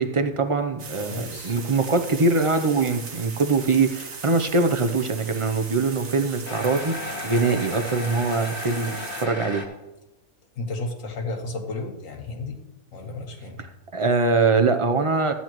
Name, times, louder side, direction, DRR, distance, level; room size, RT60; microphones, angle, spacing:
voice 1, 0.0-6.9 7.2-9.6 13.9-15.3, right 3 dB, 45° right, 7 dB, 0.4 m, -23 dB
sound 1, 0.8-9.3, right 5 dB, 70° right, 1.6 m, -39 dB
voice 2, 1.1-1.6 10.6-12.6 12.9-13.6, left 2 dB, 65° left, 4 dB, 1.6 m, -33 dB
sound 2, 1.6-2.0 2.4-2.5 3.2-3.3 4.0-4.1 6.5-9.7, left 1 dB, 35° left, 2.1 m, -34 dB
13.5 x 9.7 x 3.0 m, 1.0 s
omnidirectional pair, 1.5 m